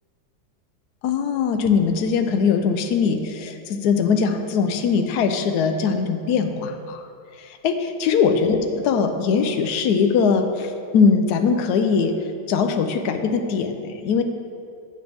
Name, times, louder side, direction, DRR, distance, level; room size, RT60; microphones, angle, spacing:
voice 1, 1.0-7.0 7.4-12.1 12.5-14.2, left 5 dB, 75° left, 7 dB, 0.9 m, -21 dB
8.9 x 8.0 x 3.4 m, 2.3 s
omnidirectional pair, 2.2 m